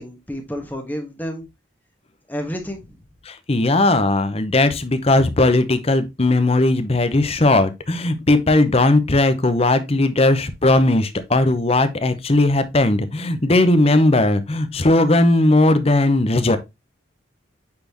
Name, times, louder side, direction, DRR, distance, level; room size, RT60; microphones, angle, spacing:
voice 1, 0.0-1.4 2.3-3.0, equal, 10° left, 1.4 m, -30 dB
voice 2, 3.2-16.6, left 2 dB, 30° left, 0.8 m, -17 dB
8.5 x 4.3 x 2.9 m
head